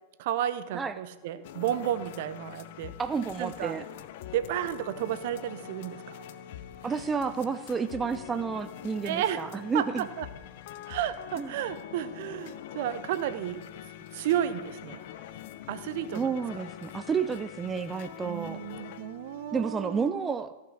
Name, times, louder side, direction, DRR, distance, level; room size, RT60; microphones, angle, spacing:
voice 1, 0.2-2.9 3.4-3.7 4.3-6.2 9.0-9.4 9.7-10.3 10.9-13.6 14.1-15.0 15.7-16.3 18.2-20.4, right 11 dB, 55° right, 12 dB, 0.8 m, -32 dB
Glitch Scape Beat Thing, 1.4-20.1, left 11 dB, 55° left, 0.6 m, -44 dB
voice 2, 3.0-3.9 6.8-10.1 11.4-11.5 16.1-18.6 19.5-20.5, right 5 dB, 15° right, 10 dB, 0.4 m, -31 dB
14.5 x 5.9 x 6.2 m, 1.2 s
figure-of-eight pair, 95°, 0 cm